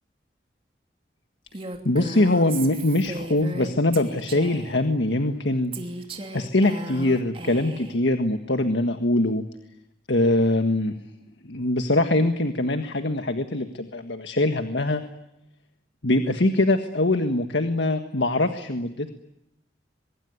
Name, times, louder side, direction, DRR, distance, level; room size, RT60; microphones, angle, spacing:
Female speech woman speaking, 1.5-4.8 5.7-8.0, right 2 dB, 30° right, 2.9 m, -36 dB
voice 1, 1.8-5.7 6.3-9.4 10.1-10.9 11.4-15.0 16.0-19.1, left 2 dB, 75° left, 7 dB, 1.6 m, -23 dB
24.0 x 23.0 x 9.6 m, 0.83 s
head